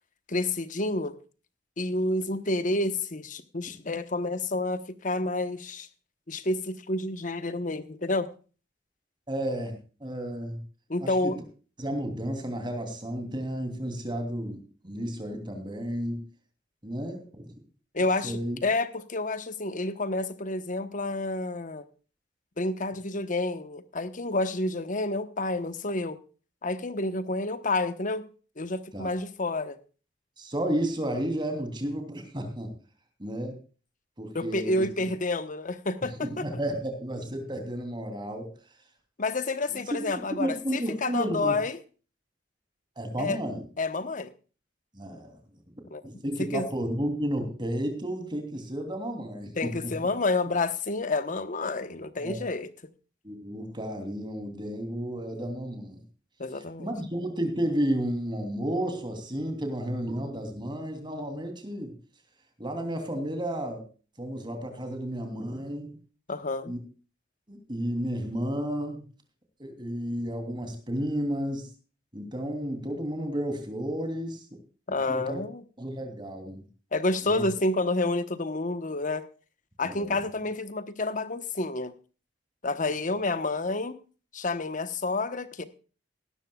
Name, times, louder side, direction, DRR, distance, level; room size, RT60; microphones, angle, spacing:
voice 1, 0.3-1.1 1.8-5.9 6.3-8.3 10.9-11.4 17.9-21.8 22.6-26.2 26.6-28.2 28.6-29.8 34.3-36.4 39.2-41.8 43.2-43.4 43.8-44.3 45.9-46.0 46.4-46.6 49.5-52.7 56.4-56.9 66.3-66.7 74.9-75.6 76.9-79.2 79.8-81.9 82.6-84.0 84.3-85.6, left 2 dB, 45° left, 11 dB, 1.1 m, -29 dB
voice 2, 9.3-10.6 11.0-11.3 11.8-16.2 16.8-17.5 18.2-18.6 28.9-29.1 30.4-32.7 33.2-33.6 34.2-34.8 36.2-38.5 39.7-39.8 40.2-41.5 43.0-43.6 44.9-45.4 46.0-49.7 52.2-52.4 53.2-56.0 56.8-61.9 62.6-63.9 64.2-65.9 66.7-66.8 67.5-69.0 69.6-71.7 72.1-74.4 74.9-75.4 75.8-76.6 77.3-77.4 79.8-80.2, right 1 dB, 25° right, 6 dB, 3.1 m, -32 dB
17.5 x 13.0 x 2.3 m, 0.36 s
head